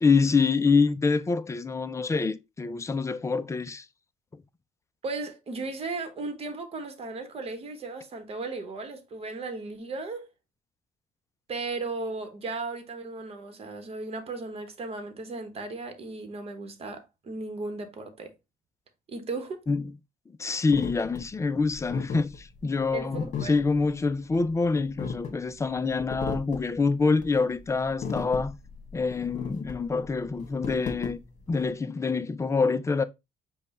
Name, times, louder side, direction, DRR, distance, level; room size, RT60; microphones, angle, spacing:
voice 1, 0.0-3.9 19.7-19.9 20.4-28.5 28.9-31.2 31.5-33.0, left 4 dB, 15° left, 0.4 m, -26 dB
voice 2, 5.0-10.3 11.5-18.3 19.1-19.6 22.9-23.5, right 3 dB, 35° right, 1.1 m, -36 dB
sound 1, 20.7-31.7, left 5 dB, 45° left, 1.4 m, -36 dB
5.3 x 2.3 x 4.1 m
cardioid pair, 110°, 17 cm